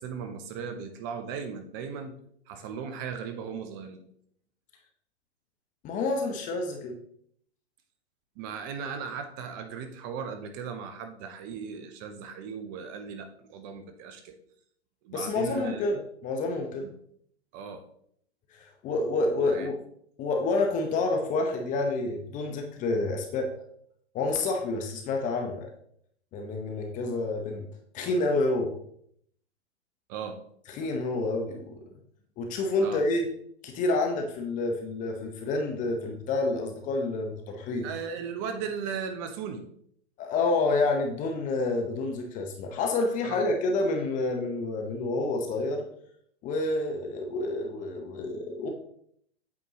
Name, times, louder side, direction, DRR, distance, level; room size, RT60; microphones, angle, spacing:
voice 1, 0.0-2.2 2.5-4.0 8.4-14.4 15.0-15.8 17.5-17.8 19.5-19.7 30.1-30.4 32.8-33.0 37.8-39.6 43.2-43.4, right 6 dB, 20° right, 7 dB, 0.3 m, -37 dB
voice 2, 5.8-6.9 15.1-16.9 18.6-19.7 20.2-23.5 24.1-25.7 26.3-27.6 27.9-28.7 30.7-31.7 32.4-33.3 33.6-37.9 40.2-45.8 46.4-48.7, left 2 dB, 25° left, 3 dB, 0.8 m, -28 dB
8.4 x 4.4 x 2.9 m, 0.67 s
hypercardioid pair, 120°, 34 cm